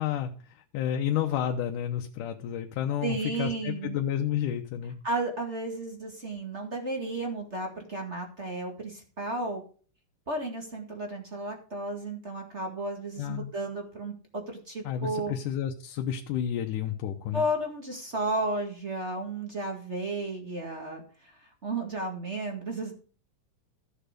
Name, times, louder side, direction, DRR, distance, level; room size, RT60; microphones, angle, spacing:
voice 1, 0.0-5.0 13.2-13.5 14.8-17.4, left 10 dB, 80° left, 4 dB, 2.4 m, -31 dB
voice 2, 3.0-4.0 5.0-9.6 10.3-15.3 17.3-22.9, right 2 dB, 25° right, 2 dB, 1.7 m, -33 dB
14.0 x 6.9 x 5.2 m, 0.40 s
omnidirectional pair, 3.7 m